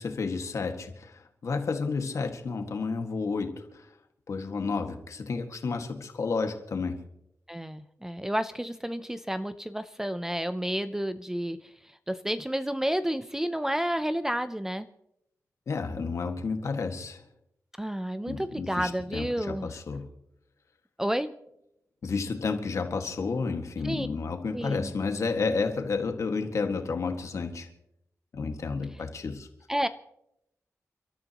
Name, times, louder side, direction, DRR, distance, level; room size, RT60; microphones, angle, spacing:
voice 1, 0.0-3.9 4.3-7.0 15.7-17.2 18.3-20.1 22.0-27.7 28.3-29.5, left 4 dB, 60° left, 5 dB, 1.8 m, -31 dB
voice 2, 7.5-11.6 12.1-14.9 17.8-19.7 21.0-21.3 23.8-24.1 24.5-24.9 29.7-29.9, equal, 10° right, 11 dB, 0.5 m, -30 dB
29.5 x 13.5 x 3.0 m, 0.77 s
wide cardioid pair, 155°, 6 cm